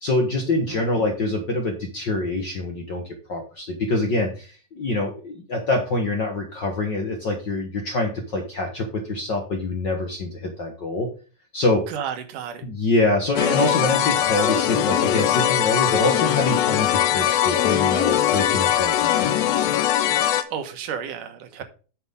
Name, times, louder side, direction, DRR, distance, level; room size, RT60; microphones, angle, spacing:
voice 1, 0.0-11.1 11.5-11.8 12.6-19.3, left 2 dB, 55° left, 3 dB, 1.3 m, -25 dB
voice 2, 11.9-12.6 20.5-21.6, right 8 dB, 70° right, 8 dB, 2.6 m, -32 dB
sound 1, 13.4-20.4, left 11 dB, 85° left, 1.5 m, -21 dB
9.0 x 7.0 x 3.6 m, 0.36 s
omnidirectional pair, 4.0 m